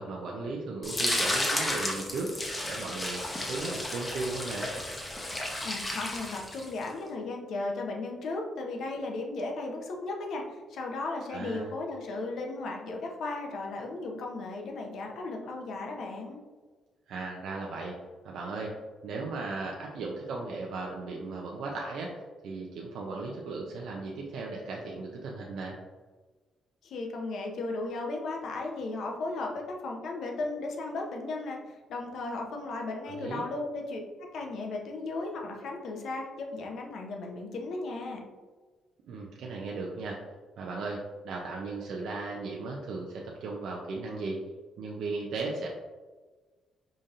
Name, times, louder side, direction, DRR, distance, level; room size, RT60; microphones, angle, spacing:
voice 1, 0.0-2.3 2.6-4.7 11.3-11.7 17.1-18.0 18.2-18.7 19.0-22.1 22.4-25.8 33.1-33.4 39.1-40.2 40.6-44.4 44.8-45.7, right 3 dB, 75° right, -1 dB, 0.5 m, -36 dB
sound 1, 0.8-6.9, left 1 dB, 20° left, 0.8 m, -32 dB
voice 2, 5.6-16.4 26.8-31.6 31.9-38.2, left 2 dB, 70° left, 1 dB, 0.7 m, -35 dB
5.0 x 2.7 x 2.5 m, 1.3 s
cardioid pair, 90°, 0 cm